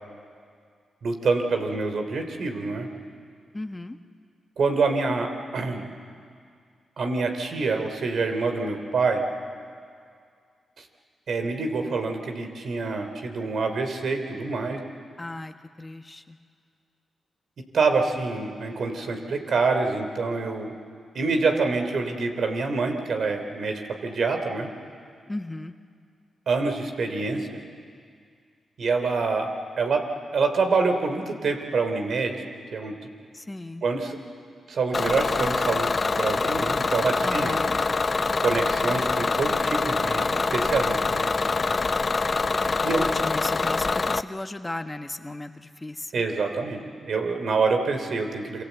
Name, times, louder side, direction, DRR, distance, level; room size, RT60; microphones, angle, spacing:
voice 1, 1.0-2.9 4.6-5.8 7.0-9.2 10.8-10.9 11.3-14.8 17.7-20.7 21.1-24.7 26.5-27.6 28.8-29.5 29.8-32.4 32.7-32.9 33.8-34.2 34.7-37.6 38.4-41.3 42.8-43.0 46.1-48.6, right 4 dB, 65° right, 5 dB, 3.0 m, -26 dB
voice 2, 3.5-4.0 15.2-16.4 25.3-25.7 33.3-33.8 37.2-37.7 42.9-46.2, left 2 dB, 20° left, 7 dB, 1.4 m, -35 dB
Bus / Engine, 34.9-44.2, left 4 dB, 45° left, 0.6 m, -25 dB
27.0 x 25.5 x 8.1 m, 2.2 s
supercardioid pair, 50°, 0 cm